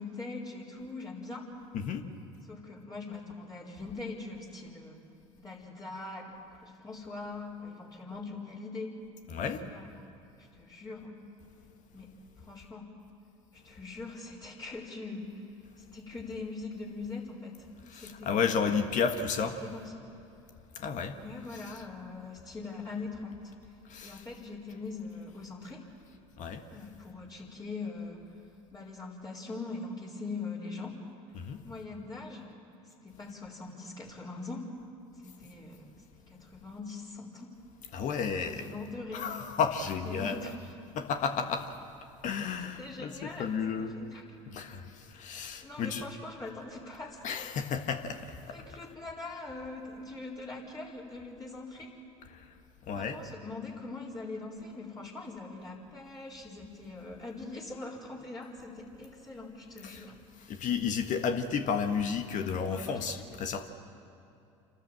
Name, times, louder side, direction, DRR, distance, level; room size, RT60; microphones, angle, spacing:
voice 1, 0.0-1.5 2.5-5.0 5.4-8.9 9.5-9.9 10.4-11.1 11.9-12.1 12.4-12.9 13.5-15.4 15.8-17.7 17.9-18.9 19.4-19.9 21.1-23.5 24.0-25.8 26.7-28.2 28.7-31.0 31.6-32.5 33.0-34.7 35.2-35.9 36.3-37.5 38.6-39.3 40.0-40.5 42.6-44.2 45.6-47.5 48.5-51.9 52.9-60.2 62.7-63.1, left 3 dB, 25° left, -5 dB, 4.3 m, -42 dB
voice 2, 9.3-9.6 17.9-19.6 20.7-21.1 21.5-21.7 23.9-24.2 26.4-26.6 31.3-31.6 37.9-38.7 39.1-40.5 40.9-41.7 42.2-43.9 44.5-46.1 47.2-48.2 48.5-48.6 52.3-52.4 52.9-53.2 59.8-60.1 60.5-63.7, left 6 dB, 50° left, 6 dB, 1.5 m, -32 dB
27.5 x 13.0 x 7.7 m, 2.7 s
hypercardioid pair, 75°, 16 cm